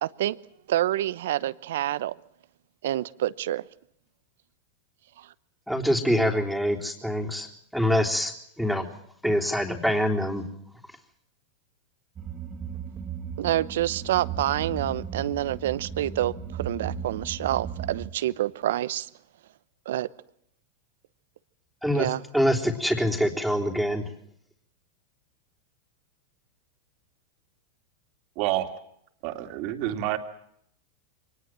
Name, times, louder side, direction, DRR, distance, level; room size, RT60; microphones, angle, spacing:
voice 1, 0.0-0.4 0.7-2.2 2.8-3.6 13.4-19.1 19.9-20.1 21.9-22.2, right 13 dB, 75° right, 0.9 m, -27 dB
voice 2, 5.7-8.9 9.2-10.4 21.8-22.1 22.3-24.0 29.9-30.0, equal, ahead, 3.5 m, -25 dB
sound 1, 12.2-18.1, right 6 dB, 30° right, 2.5 m, -36 dB
voice 3, 28.4-28.7 29.2-30.2, right 14 dB, 55° right, 2.7 m, -28 dB
24.0 x 19.5 x 7.6 m
hypercardioid pair, 110°, 0 cm